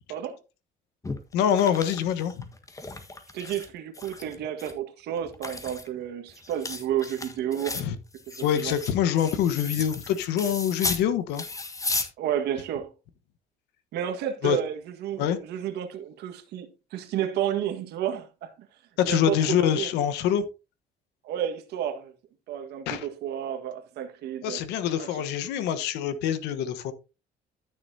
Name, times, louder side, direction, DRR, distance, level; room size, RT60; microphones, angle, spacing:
sound 1, 1.0-3.7 3.9-4.7 5.2-11.1 11.3-12.1, left 3 dB, 20° left, 1.5 m, -35 dB
voice 1, 1.3-2.5 7.7-8.0 8.4-11.4 11.9-12.0 14.4-14.6 15.2-15.4 19.0-20.4 22.9-23.1 24.4-26.9, left 9 dB, 90° left, 1.2 m, -25 dB
voice 2, 3.3-7.8 8.3-8.7 12.2-12.9 13.9-18.5 19.1-19.9 21.2-22.1 22.5-24.6 25.0-25.1, right 10 dB, 80° right, 1.7 m, -31 dB
12.5 x 6.9 x 2.8 m
cardioid pair, 110°, 17 cm